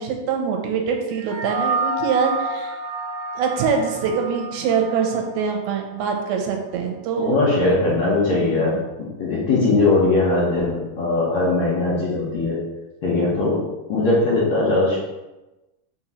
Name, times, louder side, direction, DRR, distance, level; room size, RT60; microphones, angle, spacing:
voice 1, 0.0-2.7 3.4-7.4 8.5-8.8, right 6 dB, 85° right, 2 dB, 2.7 m, -24 dB
sound 1, 1.1-5.8, right 3 dB, 60° right, 2.5 m, -29 dB
voice 2, 7.2-8.7 9.0-12.6 13.0-13.6 13.9-15.0, left 2 dB, 65° left, -6 dB, 1.8 m, -20 dB
6.1 x 3.0 x 5.5 m, 1.0 s
omnidirectional pair, 4.4 m